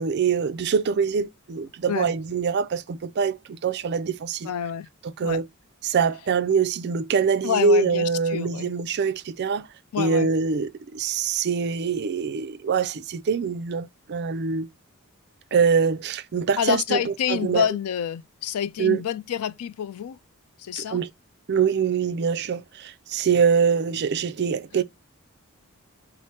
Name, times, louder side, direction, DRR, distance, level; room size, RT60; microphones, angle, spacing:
voice 1, 0.0-4.5 5.2-5.5 5.8-9.7 10.0-14.7 15.5-17.6 18.8-19.0 20.8-21.1 21.5-24.8, right 5 dB, 50° right, 0.4 m, -24 dB
voice 2, 4.4-4.9 5.2-5.4 7.4-8.7 9.9-10.3 16.6-20.2 20.6-21.0, left 9 dB, 85° left, 0.4 m, -28 dB
4.6 x 2.1 x 4.2 m
head